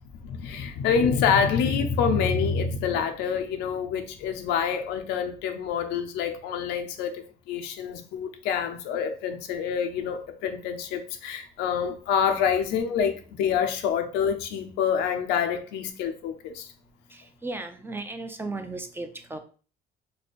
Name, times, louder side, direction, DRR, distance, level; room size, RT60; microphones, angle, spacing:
voice 1, 0.2-16.7, left 7 dB, 90° left, 0.6 m, -27 dB
voice 2, 17.1-19.4, right 2 dB, 15° right, 0.5 m, -35 dB
3.4 x 2.2 x 4.2 m
cardioid pair, 110°, 17 cm